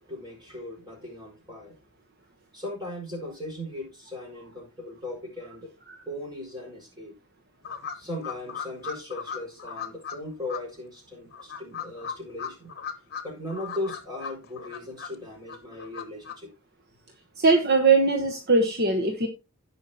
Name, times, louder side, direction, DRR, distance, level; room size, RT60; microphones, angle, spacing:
voice 1, 0.0-1.7 2.5-5.7 6.0-7.1 7.9-12.7 13.2-16.5, left 1 dB, 20° right, 5.1 m, -38 dB
sound 1, 7.6-10.2 10.5-10.6 11.3-13.2 13.5-15.1 15.5-16.3, left 7 dB, 45° left, 1.2 m, -36 dB
voice 2, 17.4-19.3, right 3 dB, 45° right, 1.2 m, -21 dB
17.0 x 5.6 x 2.9 m
head